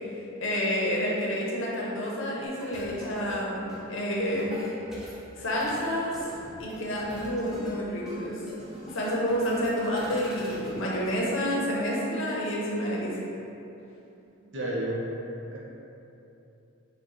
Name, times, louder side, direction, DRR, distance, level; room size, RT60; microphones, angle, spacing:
voice 1, 0.4-4.6 5.4-6.1 6.6-8.4 8.9-13.2, equal, 60° left, -4 dB, 0.7 m, -29 dB
sound 1, 2.6-11.2, left 1 dB, ahead, 0.5 m, -44 dB
voice 2, 14.5-15.6, right 1 dB, 55° right, -4 dB, 0.6 m, -32 dB
4.6 x 2.2 x 3.0 m, 2.9 s
head